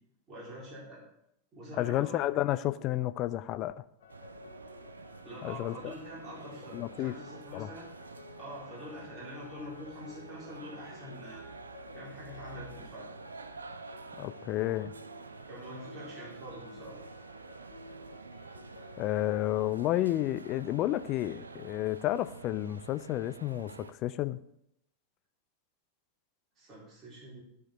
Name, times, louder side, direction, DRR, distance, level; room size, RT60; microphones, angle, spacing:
voice 1, 0.3-1.0 1.5-2.2 5.2-7.9 8.4-11.5 11.9-13.0 15.5-16.9 26.6-27.4, equal, 20° right, -7 dB, 4.1 m, -45 dB
voice 2, 1.8-3.7 5.4-5.9 6.7-7.1 7.5-7.7 14.2-14.9 19.0-24.4, left 14 dB, 35° left, 14 dB, 0.4 m, -31 dB
sound 1, 4.0-19.2, left 4 dB, 60° left, 1.0 m, -53 dB
sound 2, 4.1-23.9, right 4 dB, 75° right, 0.4 m, -48 dB
13.0 x 5.1 x 4.0 m, 0.78 s
figure-of-eight pair, 90°, 0 cm